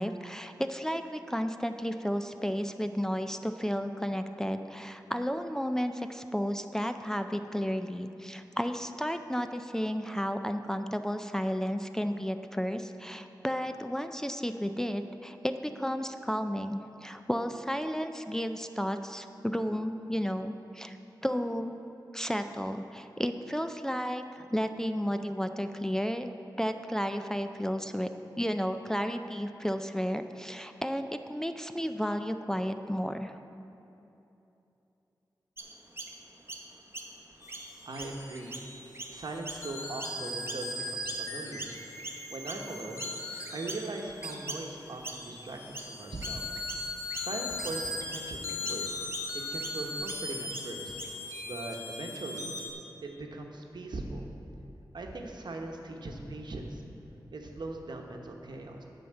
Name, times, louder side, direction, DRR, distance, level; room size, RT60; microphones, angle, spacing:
voice 1, 0.0-21.0 21.2-21.8 22.1-26.3 26.6-28.1 28.4-33.4, equal, 5° left, 7 dB, 0.4 m, -32 dB
Chirp tweet, 35.6-41.3 41.6-51.3, right 2 dB, 30° right, 0.8 m, -44 dB
sound 1, 37.4-52.7, left 2 dB, 40° left, 1.1 m, -39 dB
voice 2, 37.8-38.6 39.1-41.7 42.3-43.1 43.5-46.5 47.2-48.9 49.5-51.0 51.4-52.6 53.0-54.3 54.9-56.8 57.3-58.8, right 2 dB, 75° right, 2 dB, 1.0 m, -40 dB
9.0 x 5.6 x 7.6 m, 2.9 s
wide cardioid pair, 90°, 8 cm